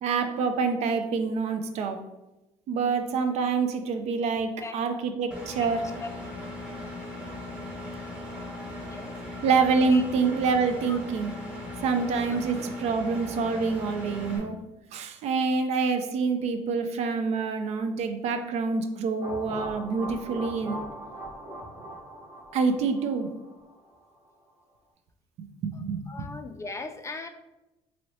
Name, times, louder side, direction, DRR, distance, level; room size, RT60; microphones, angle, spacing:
voice 1, 0.0-2.0 2.7-5.9 9.4-11.4 11.8-14.6 14.9-20.8 22.5-23.3 25.4-26.3, right 4 dB, 65° right, 7 dB, 0.4 m, -26 dB
Engine, 5.3-14.4, left 1 dB, 10° right, 1.1 m, -38 dB
voice 2, 8.8-9.3 9.9-10.0 10.9-11.0 26.1-27.3, left 3 dB, 25° left, 7 dB, 0.3 m, -38 dB
sound 1, 19.2-24.0, right 1 dB, 40° right, 1.0 m, -40 dB
2.9 x 2.7 x 3.0 m, 0.96 s
supercardioid pair, 75°, 12 cm